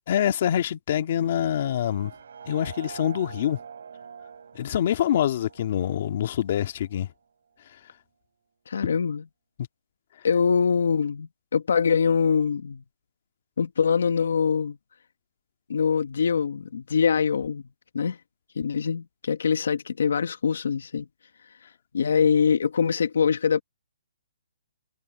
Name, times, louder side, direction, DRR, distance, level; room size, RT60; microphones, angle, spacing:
voice 1, 0.1-2.1 2.5-3.6 4.6-7.1, left 10 dB, 40° left, 2.0 m, -25 dB
sound 1, 1.0-7.0, right 6 dB, 65° right, 4.9 m, -45 dB
voice 2, 8.7-9.2 10.2-12.8 13.6-14.7 15.7-17.6 17.9-18.2 18.6-21.0 21.9-23.6, left 6 dB, 70° left, 1.1 m, -23 dB
hypercardioid pair, 170°, 0 cm